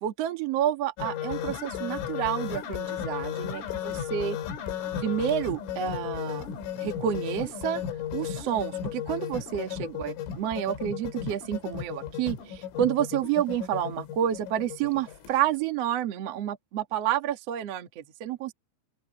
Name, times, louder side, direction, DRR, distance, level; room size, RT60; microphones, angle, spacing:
voice 1, 0.0-4.4 5.0-6.5 6.8-7.8 8.1-18.5, right 10 dB, 75° right, 1.4 m, -29 dB
sound 1, 1.0-15.4, left 9 dB, 85° left, 4.9 m, -35 dB
open air
omnidirectional pair, 5.6 m